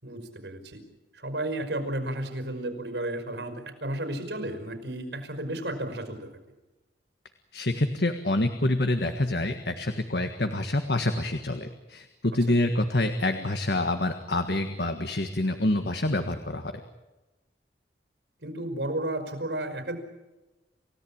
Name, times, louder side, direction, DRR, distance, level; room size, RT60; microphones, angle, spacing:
voice 1, 0.0-0.8 1.1-3.5 3.8-6.3 12.5-12.6 18.4-20.0, right 1 dB, 75° right, 8 dB, 5.5 m, -33 dB
voice 2, 7.5-16.7, left 1 dB, 65° left, 7 dB, 1.7 m, -27 dB
29.0 x 17.0 x 8.9 m, 1.1 s
head